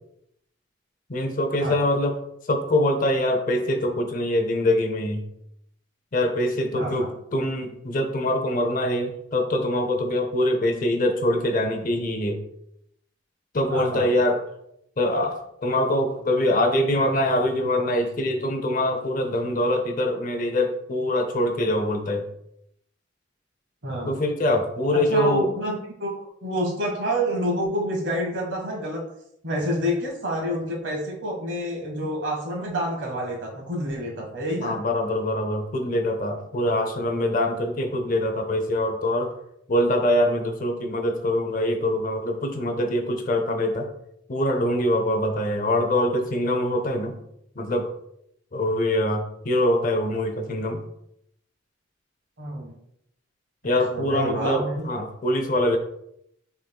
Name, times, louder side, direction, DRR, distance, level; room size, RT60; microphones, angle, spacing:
voice 1, 1.1-2.2 2.5-5.2 6.1-12.4 13.5-14.4 15.0-22.3 24.1-25.5 34.6-39.3 39.7-43.9 44.3-47.1 47.6-47.9 48.5-50.8 53.6-55.8, left 1 dB, 45° left, 5 dB, 0.6 m, -24 dB
voice 2, 6.7-7.1 13.7-14.1 23.8-24.1 24.9-29.0 29.4-34.8 52.4-52.7 53.9-54.9, equal, 70° right, -1 dB, 1.5 m, -28 dB
5.8 x 3.7 x 2.3 m, 0.75 s
head